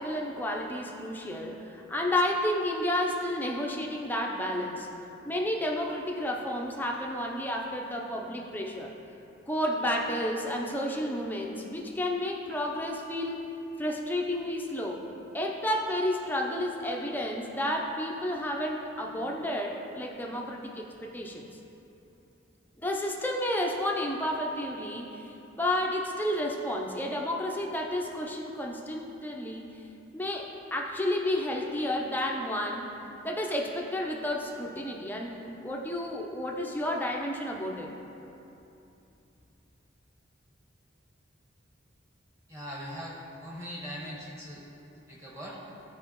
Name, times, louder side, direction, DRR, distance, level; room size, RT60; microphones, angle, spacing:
voice 1, 0.0-4.9 5.3-8.9 9.5-13.4 13.8-15.0 15.3-21.5 22.8-29.6 30.1-32.9 33.2-37.9, left 1 dB, 10° left, 0 dB, 0.6 m, -31 dB
voice 2, 42.5-44.6 45.1-45.6, equal, 15° right, -5 dB, 1.4 m, -40 dB
14.0 x 4.8 x 3.0 m, 2.9 s
head